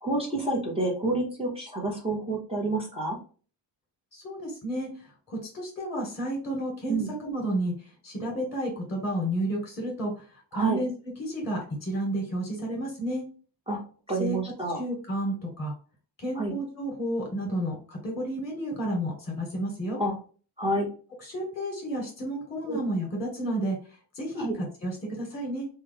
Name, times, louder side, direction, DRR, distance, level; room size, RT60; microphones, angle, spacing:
voice 1, 0.0-3.2 6.9-7.1 10.5-10.8 13.7-13.8 14.1-14.8 16.4-16.5 20.0-20.1 20.6-20.8 22.7-22.8 24.4-24.5, right 2 dB, 15° right, -3 dB, 0.8 m, -28 dB
voice 2, 4.1-10.9 11.2-13.2 14.2-14.4 14.7-15.7 16.2-20.0 21.2-25.7, right 1 dB, 25° left, 0 dB, 1.4 m, -31 dB
3.0 x 2.3 x 3.4 m, 0.39 s
wide cardioid pair, 125°, 45 cm